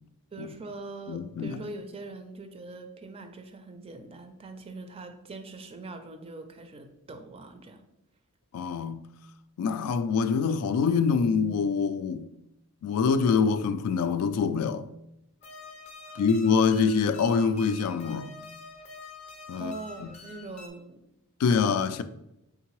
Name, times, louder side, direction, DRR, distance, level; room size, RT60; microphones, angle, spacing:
voice 1, 0.3-7.8 16.1-16.2 19.6-21.0, right 2 dB, 25° right, 0.4 m, -42 dB
voice 2, 1.1-1.6 8.5-9.1 9.6-12.3 12.8-14.8 16.2-18.3 19.5-19.7 20.0-20.1 21.4-22.0, left 5 dB, 85° left, 0.3 m, -25 dB
sound 1, 15.4-20.7, left 3 dB, 30° left, 0.5 m, -46 dB
3.7 x 3.6 x 3.0 m
head